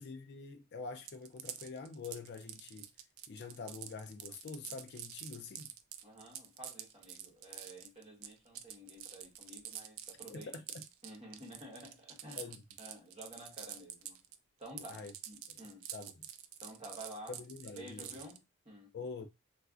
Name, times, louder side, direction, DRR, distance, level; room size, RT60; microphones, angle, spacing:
voice 1, 0.0-2.9 3.3-5.7 10.3-10.6 12.4-12.6 14.9-15.1 15.5-15.6 15.9-16.3 17.3-18.1 18.9-19.3, left 4 dB, 50° left, 0.4 m, -45 dB
sound 1, 1.0-14.4 14.6-18.4, right 11 dB, 65° right, 0.3 m, -47 dB
voice 2, 6.0-10.5 11.0-14.3 14.6-15.9 16.6-17.4 17.8-18.9, right 1 dB, 30° right, 1.3 m, -51 dB
3.2 x 2.4 x 2.4 m
head